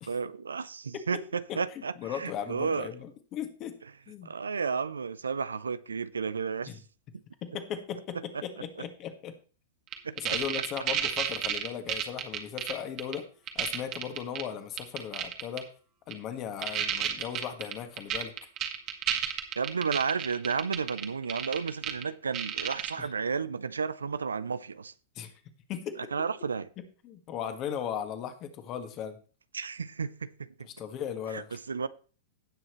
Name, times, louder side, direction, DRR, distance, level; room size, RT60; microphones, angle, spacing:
voice 1, 0.0-2.9 4.2-6.8 10.0-10.4 19.6-24.9 26.1-26.7 29.5-30.5 31.3-31.9, right 5 dB, 85° right, 0.6 m, -32 dB
voice 2, 2.0-3.8 4.1-4.3 6.7-6.8 7.4-9.4 10.2-13.3 13.6-15.7 16.1-18.3 23.0-23.1 25.2-25.3 25.7-26.0 27.0-29.2 30.6-31.6, left 8 dB, 35° left, 1.9 m, -37 dB
sound 1, 9.9-12.7 13.0-13.1 13.5-14.4 14.8-15.6 16.1-16.2 16.6-22.0 22.3-22.9, right 10 dB, 35° right, 1.9 m, -31 dB
17.0 x 6.4 x 3.2 m
hypercardioid pair, 105°, 0 cm